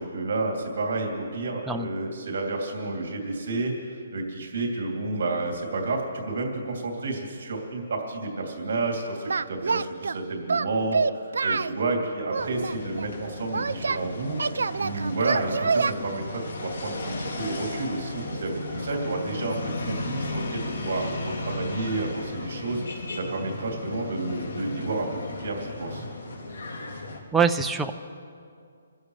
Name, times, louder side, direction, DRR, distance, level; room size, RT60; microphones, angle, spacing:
voice 1, 0.0-14.4 14.8-22.8 23.1-25.1 25.4-26.1, right 2 dB, 55° right, 0 dB, 2.8 m, -30 dB
Singing, 9.3-10.2 10.5-11.8 12.3-14.0 14.4-15.9, right 4 dB, 85° right, 0.4 m, -26 dB
sound 1, 12.3-27.2, left 2 dB, 80° left, 2.9 m, -35 dB
voice 2, 27.3-27.9, right 5 dB, 5° right, 4 dB, 0.4 m, -23 dB
27.0 x 15.0 x 3.2 m, 2.3 s
hypercardioid pair, 175°, 0 cm